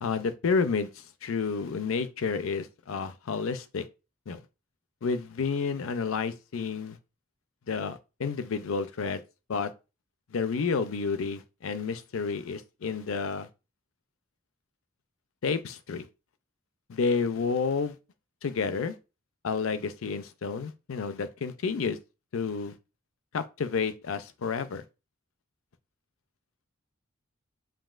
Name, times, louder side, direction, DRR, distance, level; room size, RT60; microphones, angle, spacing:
voice 1, 0.0-3.8 4.3-4.4 5.0-7.0 7.7-9.2 9.5-9.7 10.3-13.5 15.4-16.1 16.9-18.0 18.4-19.0 19.4-22.0 22.3-22.7 23.3-24.8, left 5 dB, 80° left, 0.5 m, -30 dB
7.4 x 2.8 x 2.4 m
head